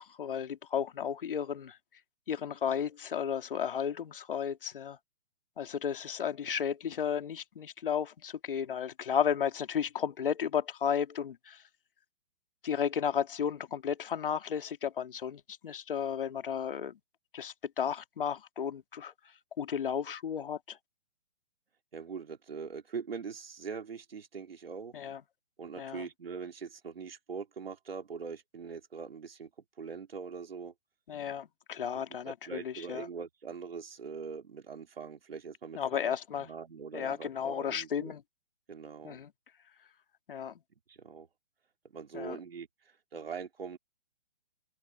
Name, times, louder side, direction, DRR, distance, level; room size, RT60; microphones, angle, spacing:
voice 1, 0.0-1.8 2.3-5.0 5.6-11.6 12.6-17.0 17.3-19.1 19.6-20.8 24.9-25.2 25.8-26.1 31.1-33.1 35.8-36.5 36.9-38.2 39.0-39.3 40.3-40.6 42.1-42.4, left 8 dB, 65° left, 2.0 m, -33 dB
voice 2, 21.9-24.9 25.6-29.5 29.8-30.7 31.8-38.1 38.7-39.2 40.9-41.3 41.9-42.7 43.1-43.8, right 5 dB, 75° right, 3.4 m, -42 dB
hypercardioid pair, 135°, 29 cm